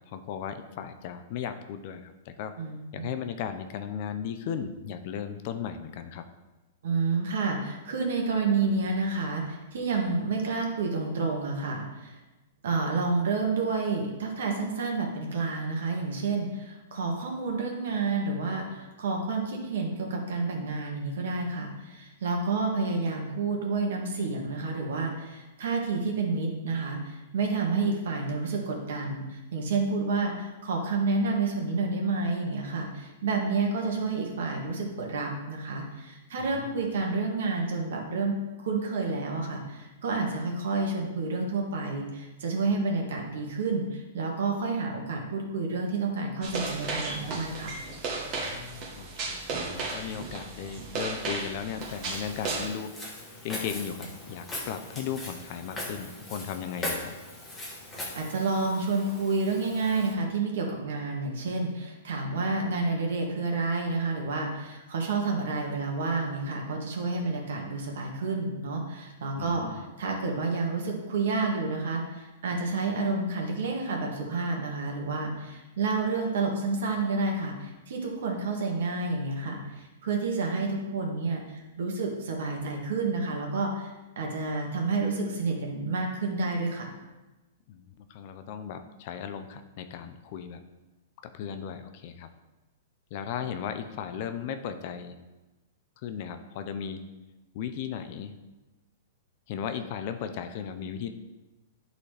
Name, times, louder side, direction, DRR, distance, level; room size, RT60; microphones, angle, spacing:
voice 1, 0.0-2.5 2.9-6.2 36.4-37.1 48.4-52.9 53.4-57.1 69.4-70.2 87.7-90.6 91.2-92.3 93.1-95.2 96.0-97.0 97.5-98.3 99.5-101.1, left 8 dB, 40° left, 9 dB, 0.5 m, -36 dB
voice 2, 2.6-3.1 6.8-12.2 12.6-47.7 58.1-83.9 84.1-86.9, right 3 dB, 70° right, 1 dB, 1.7 m, -29 dB
sound 1, 46.4-52.7, right 3 dB, 30° right, 1.2 m, -35 dB
Walk footsteps, 51.8-60.1, left 1 dB, 10° left, 1.2 m, -40 dB
11.0 x 4.0 x 3.3 m, 1.1 s
hypercardioid pair, 165°, 0 cm